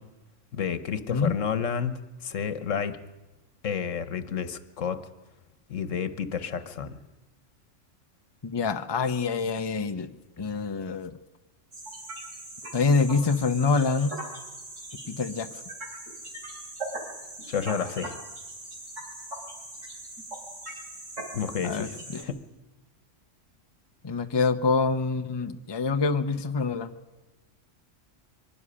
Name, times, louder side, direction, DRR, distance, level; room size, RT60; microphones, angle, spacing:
voice 1, 0.5-3.0 3.6-5.0 5.7-7.0 17.5-18.2 21.3-22.4, left 7 dB, 75° left, 12 dB, 1.4 m, -30 dB
voice 2, 8.4-10.1 10.4-11.2 12.7-14.1 15.1-15.5 21.6-22.2 24.0-26.9, left 4 dB, 25° left, 8 dB, 0.7 m, -26 dB
sound 1, 11.7-22.2, right 2 dB, 75° right, 3.8 m, -40 dB
23.0 x 12.5 x 9.9 m, 1.1 s
omnidirectional pair, 1.3 m